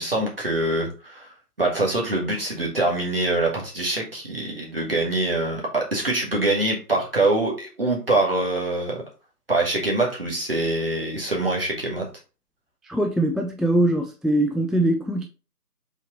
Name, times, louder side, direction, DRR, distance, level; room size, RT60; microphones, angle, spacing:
voice 1, 0.0-9.0 9.5-12.1, right 2 dB, 35° right, 1.5 m, -24 dB
voice 2, 12.9-15.3, right 1 dB, ahead, 0.3 m, -22 dB
4.2 x 3.6 x 3.0 m
figure-of-eight pair, 165°, 48 cm